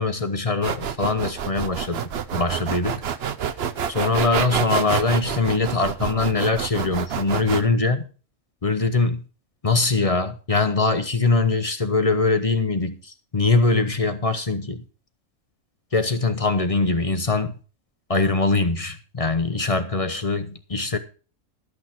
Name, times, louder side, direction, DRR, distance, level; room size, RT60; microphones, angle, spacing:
voice 1, 0.0-3.0 3.9-8.0 8.6-9.2 9.6-14.8 15.9-17.5 18.1-21.0, left 3 dB, 30° left, 0.8 m, -22 dB
sound 1, 0.6-7.6, right 8 dB, 55° right, 0.9 m, -28 dB
12.5 x 6.3 x 5.9 m
omnidirectional pair, 1.4 m